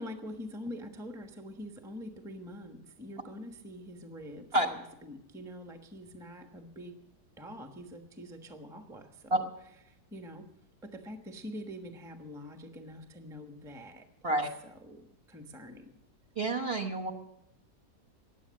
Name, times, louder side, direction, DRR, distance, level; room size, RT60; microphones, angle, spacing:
voice 1, 0.0-7.0 7.4-9.4 9.9-10.5 10.8-15.9, equal, ahead, 5 dB, 0.9 m, -45 dB
voice 2, 16.3-17.1, right 1 dB, 40° right, 1 dB, 1.2 m, -28 dB
15.5 x 10.0 x 6.4 m, 0.80 s
omnidirectional pair, 1.9 m